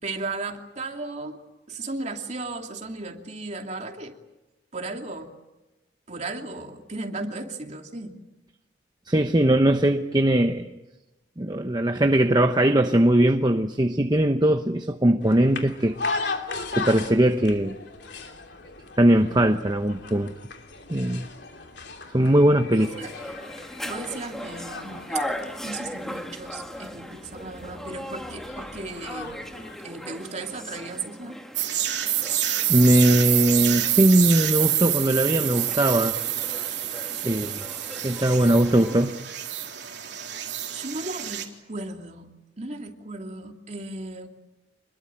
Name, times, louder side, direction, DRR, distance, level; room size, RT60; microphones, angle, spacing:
voice 1, 0.0-1.4 1.7-4.2 4.7-5.3 6.1-8.2 22.7-23.1 23.8-25.2 25.6-29.4 29.8-31.4 36.8-37.1 37.5-37.6 40.7-44.3, right 3 dB, 40° right, 3 dB, 2.8 m, -35 dB
voice 2, 9.1-10.8 11.4-16.0 16.7-17.8 19.0-20.3 20.9-21.3 22.1-22.9 32.7-36.2 37.2-37.5 38.0-39.2, right 1 dB, 20° right, 6 dB, 0.9 m, -20 dB
sound 1, 15.2-29.8, left 4 dB, 65° left, 3.1 m, -38 dB
sound 2, 22.8-39.1, equal, 5° left, 2.0 m, -39 dB
sound 3, 31.5-41.4, right 12 dB, 60° right, 3.7 m, -27 dB
27.0 x 21.5 x 9.0 m, 1.0 s
head